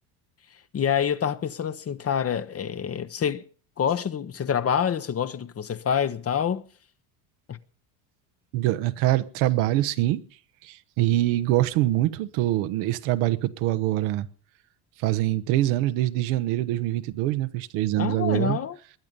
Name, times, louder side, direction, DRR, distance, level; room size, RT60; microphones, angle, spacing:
voice 1, 0.7-3.4 3.8-6.6 7.5-7.6 18.0-18.8, left 8 dB, 30° left, 1.0 m, -26 dB
voice 2, 8.5-10.2 10.6-14.3 15.0-18.6, right 15 dB, 75° right, 1.2 m, -24 dB
20.5 x 10.5 x 5.4 m
supercardioid pair, 85°, 47 cm